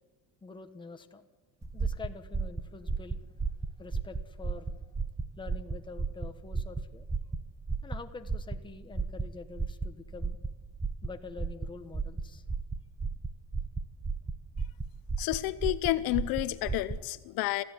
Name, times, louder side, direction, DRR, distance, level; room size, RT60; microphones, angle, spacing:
voice 1, 0.4-1.2 1.7-3.2 3.8-4.8 5.4-7.1 7.8-10.4 11.0-12.4 15.2-15.3, left 4 dB, 10° left, 6 dB, 1.3 m, -46 dB
sound 1, 1.6-17.0, right 4 dB, 10° right, 0.6 m, -35 dB
voice 2, 15.2-17.6, left 17 dB, 65° left, 14 dB, 0.9 m, -30 dB
27.5 x 14.5 x 9.9 m, 1.3 s
cardioid pair, 160°, 40 cm